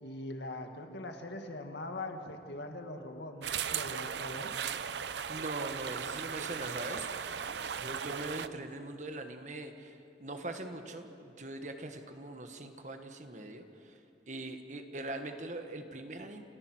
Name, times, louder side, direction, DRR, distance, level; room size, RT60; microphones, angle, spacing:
voice 1, 0.0-4.5, left 2 dB, 75° left, 4 dB, 1.9 m, -42 dB
sound 1, 3.4-8.5, right 7 dB, 75° right, 0.6 m, -37 dB
voice 2, 5.3-7.5 7.8-14.0 14.3-16.4, right 2 dB, 40° right, 6 dB, 1.4 m, -42 dB
29.0 x 14.5 x 6.2 m, 2.7 s
head